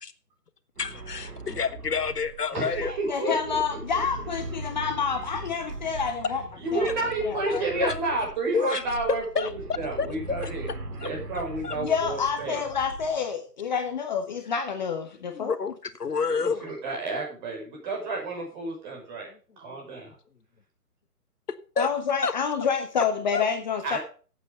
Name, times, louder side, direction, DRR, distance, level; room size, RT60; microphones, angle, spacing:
voice 1, 0.8-2.9 3.2-3.4 6.9-7.0 7.5-7.9 8.5-8.8 9.3-9.5 10.0-10.5 11.0-11.1 11.6-11.8 15.3-15.7 16.0-16.8 21.8-21.9 22.2-22.3 23.0-23.1 23.3-23.4, left 5 dB, 75° left, 1.4 m, -28 dB
sound 1, 0.8-13.3, right 2 dB, 70° right, 2.3 m, -40 dB
voice 2, 2.5-3.6 6.6-10.7 11.0-12.6 16.3-19.3 19.6-20.1 23.8-24.0, right 2 dB, 30° right, 5.7 m, -31 dB
voice 3, 3.1-6.4 6.7-6.9 7.2-7.7 11.8-15.6 21.8-24.0, left 6 dB, 30° left, 1.1 m, -28 dB
12.5 x 8.4 x 5.2 m
figure-of-eight pair, 145°, 47 cm